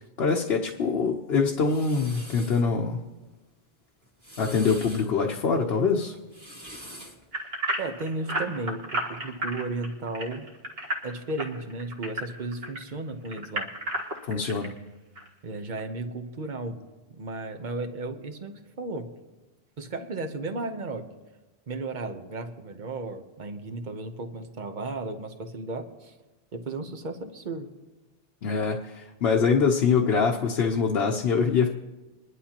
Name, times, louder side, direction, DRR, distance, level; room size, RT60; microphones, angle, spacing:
voice 1, 0.2-3.0 4.4-6.2 14.2-14.7 28.4-31.7, left 5 dB, 75° left, 1 dB, 1.0 m, -24 dB
sound 1, 1.3-2.6 4.0-5.1 6.2-7.3, equal, 15° right, 1.7 m, -44 dB
sound 2, 7.3-12.8 13.2-14.7 15.2-15.3 15.8-15.9, right 1 dB, 70° right, 2.0 m, -32 dB
voice 2, 7.8-10.5 11.0-13.7 15.4-16.8 17.2-19.1 19.8-21.1 21.7-26.1 26.5-27.7, right 2 dB, 50° right, 6 dB, 1.0 m, -34 dB
23.0 x 11.0 x 2.9 m, 1.2 s
omnidirectional pair, 1.1 m